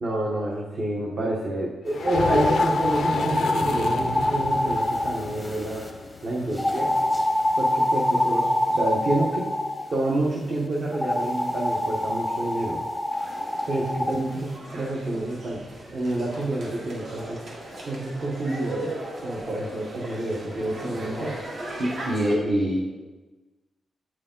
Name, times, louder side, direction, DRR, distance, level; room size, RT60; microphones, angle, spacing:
voice 1, 0.0-5.8 6.2-6.9 7.6-9.5 9.9-12.8 13.7-15.6 15.9-17.4 17.8-18.9 19.2-22.9, right 1 dB, 40° right, -4 dB, 1.0 m, -28 dB
sound 1, 1.9-7.5, left 6 dB, 70° left, 0.4 m, -32 dB
sound 2, 2.0-5.9 6.6-9.9 10.9-14.2, left 1 dB, ahead, 0.8 m, -25 dB
sound 3, 13.1-22.3, right 1 dB, 60° right, 1.7 m, -37 dB
8.4 x 4.8 x 3.7 m, 1.2 s
wide cardioid pair, 170°, 0 cm